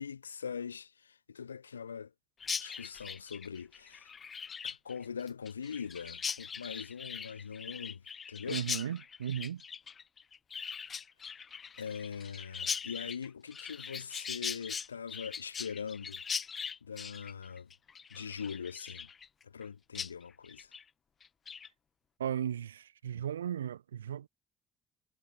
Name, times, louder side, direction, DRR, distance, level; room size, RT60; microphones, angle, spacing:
voice 1, 0.0-2.1 2.6-4.1 4.6-8.6 11.8-16.2 16.8-17.7 18.1-19.1 19.4-20.7, left 6 dB, 85° left, 1.3 m, -42 dB
Chirp tweet, 2.4-19.7 19.9-20.1 20.4-20.8 21.2-21.7, left 6 dB, 40° left, 1.9 m, -41 dB
voice 2, 8.5-9.6 22.2-24.3, right 9 dB, 85° right, 0.7 m, -36 dB
figure-of-eight pair, 50°, 0 cm